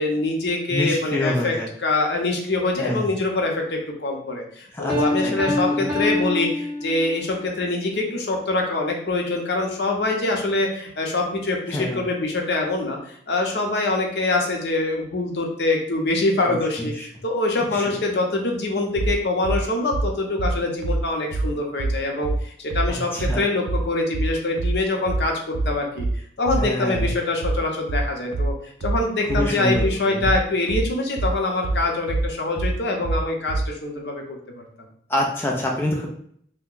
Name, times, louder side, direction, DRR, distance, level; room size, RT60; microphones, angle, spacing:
voice 1, 0.0-1.5 1.8-28.5 28.8-34.6, left 2 dB, 70° left, 1 dB, 0.7 m, -24 dB
voice 2, 0.7-1.7 2.8-3.1 4.7-5.3 5.7-6.0 11.7-12.0 16.5-17.1 17.7-17.9 22.9-23.4 26.6-27.1 29.2-30.3 35.1-36.1, left 1 dB, 15° left, -2 dB, 0.4 m, -27 dB
Piano, 4.9-7.3, left 2 dB, 20° right, 1.3 m, -26 dB
sound 1, 19.0-33.7, right 2 dB, 85° right, 0.3 m, -25 dB
2.7 x 2.2 x 3.7 m, 0.63 s
head